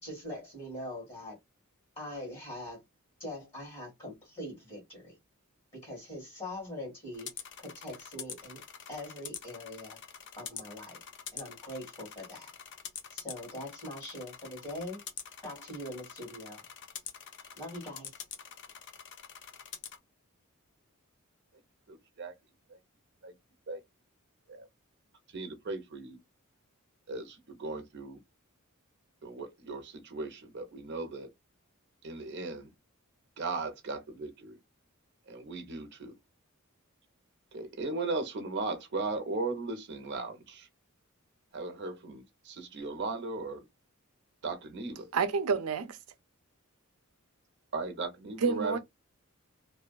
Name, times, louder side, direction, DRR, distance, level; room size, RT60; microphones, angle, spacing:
voice 1, 0.0-1.4 1.9-2.8 3.2-5.2 5.7-7.3 7.6-8.6 8.9-10.0 10.4-11.0 11.3-12.5 13.1-15.0 15.4-16.6 17.6-18.2, left 1 dB, 25° left, 1.6 m, -42 dB
sound 1, 7.1-20.0, left 8 dB, 55° left, 0.5 m, -46 dB
voice 2, 21.9-22.3 22.7-22.8 23.2-23.3 23.7-23.8 24.5-24.7 25.3-26.2 27.1-28.2 29.2-31.3 32.0-32.7 33.4-34.6 35.3-36.2 37.5-40.7 41.5-43.7 44.4-45.1 47.7-48.8, right 3 dB, 55° right, 0.7 m, -37 dB
voice 3, 45.1-46.0 48.4-48.8, right 5 dB, 90° right, 0.5 m, -28 dB
2.6 x 2.2 x 2.2 m
head